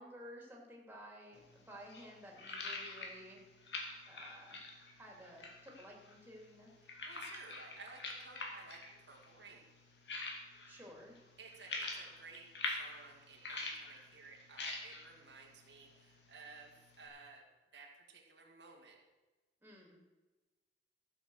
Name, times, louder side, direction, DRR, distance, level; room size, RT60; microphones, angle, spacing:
voice 1, 0.0-3.4 4.1-4.6 5.0-6.7 10.7-11.1 19.6-20.0, equal, 10° right, -1 dB, 2.8 m, -54 dB
sound 1, 1.3-17.1, left 3 dB, 75° left, 2.3 m, -47 dB
voice 2, 6.8-9.7 11.4-17.4 17.7-19.0, right 4 dB, 85° right, 0 dB, 2.3 m, -55 dB
14.5 x 8.1 x 6.4 m, 1.2 s
head